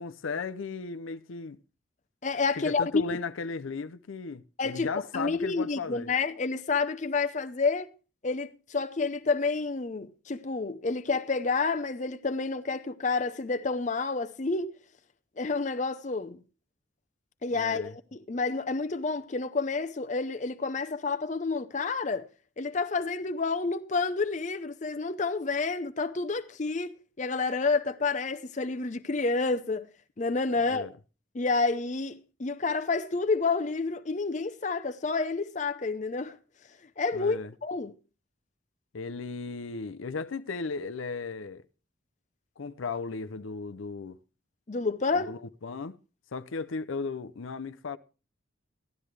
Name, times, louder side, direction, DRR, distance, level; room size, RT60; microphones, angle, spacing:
voice 1, 0.0-1.6 2.6-6.1 17.5-17.9 30.7-30.9 37.1-37.5 38.9-41.7 42.6-44.2 45.1-46.0 46.3-48.0, left 4 dB, 85° left, 0.6 m, -36 dB
voice 2, 2.2-3.2 4.6-7.9 8.2-14.8 15.4-16.4 17.4-22.3 22.6-29.9 30.2-30.9 31.3-36.4 37.0-37.9 44.7-45.3, left 4 dB, 35° left, 0.6 m, -29 dB
15.0 x 12.0 x 3.2 m
head